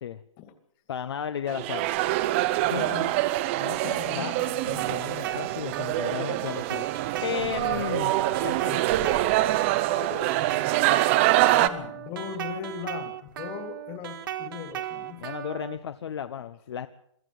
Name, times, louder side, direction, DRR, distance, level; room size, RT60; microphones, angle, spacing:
voice 1, 0.9-1.9 2.7-2.9 3.6-4.3 4.6-8.1 8.4-8.8 15.2-16.9, left 8 dB, 55° left, 11 dB, 1.0 m, -34 dB
sound 1, 1.5-11.7, right 16 dB, 25° right, 0.7 m, -25 dB
voice 2, 2.7-3.1 3.8-4.5 8.7-9.0 9.9-10.4 11.5-15.2 16.1-16.2, left 8 dB, 25° left, 9 dB, 2.3 m, -39 dB
sound 2, 4.8-15.8, right 12 dB, 45° right, 1.9 m, -37 dB
23.5 x 14.0 x 7.9 m, 0.70 s
hypercardioid pair, 160°, 16 cm